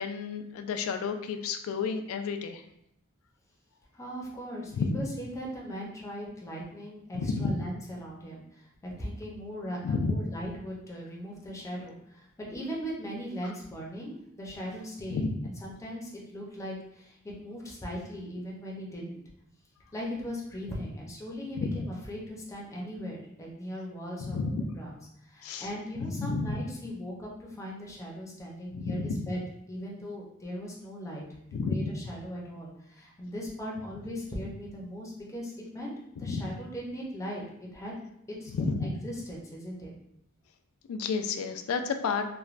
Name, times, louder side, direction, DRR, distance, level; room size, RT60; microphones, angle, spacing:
voice 1, 0.0-2.6 4.7-5.0 7.1-7.7 9.8-10.3 13.4-13.5 15.1-15.4 21.6-21.9 24.2-24.6 25.4-25.7 26.0-26.5 28.7-29.3 31.5-31.9 36.2-36.5 38.5-39.0 40.9-42.3, left 4 dB, 70° left, 7 dB, 0.3 m, -31 dB
voice 2, 3.9-15.2 15.6-17.2 17.4-19.2 19.9-24.9 25.3-29.4 29.7-31.2 31.7-35.9 36.2-37.4 37.7-37.9 38.4-39.9, equal, 15° left, -3 dB, 0.5 m, -39 dB
3.1 x 2.1 x 2.4 m, 0.76 s
head